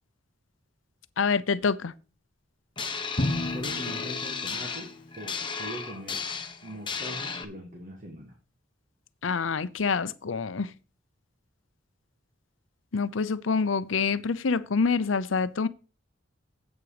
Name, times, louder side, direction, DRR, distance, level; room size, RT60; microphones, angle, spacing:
voice 1, 1.2-1.9 9.2-10.7 12.9-15.7, left 5 dB, 80° left, 0.6 m, -26 dB
sound 1, 2.8-7.4, left 5 dB, 25° left, 1.1 m, -34 dB
Drum, 3.2-5.2, left 1 dB, 45° left, 1.3 m, -32 dB
voice 2, 3.3-6.3 6.6-8.3, right 1 dB, 40° right, 1.7 m, -41 dB
8.3 x 8.0 x 4.9 m
head